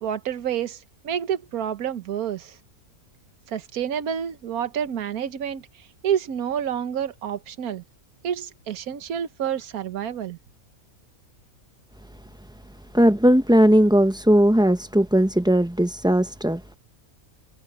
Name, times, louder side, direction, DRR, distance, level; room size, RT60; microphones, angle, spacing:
voice 1, 0.0-2.6 3.5-5.6 6.0-7.8 8.2-10.4, right 9 dB, 80° right, 1.5 m, -28 dB
voice 2, 12.9-16.6, equal, 5° right, 0.5 m, -18 dB
omnidirectional pair, 1.5 m